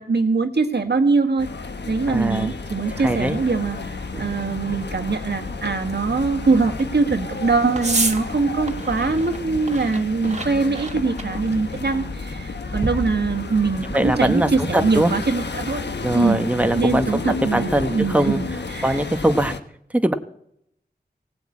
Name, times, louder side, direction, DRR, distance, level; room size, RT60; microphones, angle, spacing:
voice 1, 0.0-1.5 1.9-15.9 16.1-16.4 16.7-19.0, right 4 dB, 75° right, 6 dB, 1.6 m, -22 dB
sound 1, 1.4-19.6, left 4 dB, 85° left, 1.1 m, -32 dB
voice 2, 2.1-2.5 2.9-3.4 13.9-15.1 16.0-17.2 17.5-18.4 18.8-19.5 19.9-20.1, right 1 dB, 10° right, 7 dB, 1.0 m, -21 dB
sound 2, 3.3-14.3, right 2 dB, 40° right, 1.5 m, -33 dB
17.5 x 8.0 x 8.5 m, 0.73 s
wide cardioid pair, 70°, 17 cm